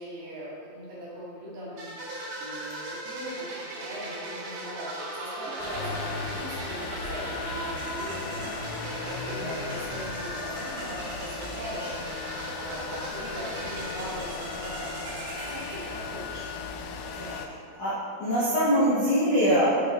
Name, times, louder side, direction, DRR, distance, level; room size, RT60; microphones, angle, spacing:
voice 1, 0.0-4.9 5.2-15.2 15.5-16.5 17.1-17.4, equal, 60° right, -9 dB, 3.6 m, -40 dB
sound 1, 1.8-16.5, right 1 dB, 85° right, 3.7 m, -38 dB
sound 2, 5.6-17.5, left 5 dB, 85° left, 2.1 m, -38 dB
Motor vehicle (road) / Engine starting, 5.7-17.3, left 1 dB, 40° left, 1.8 m, -42 dB
voice 2, 18.2-19.7, equal, 55° left, -11 dB, 1.8 m, -23 dB
10.0 x 6.7 x 2.5 m, 2.2 s
omnidirectional pair, 4.7 m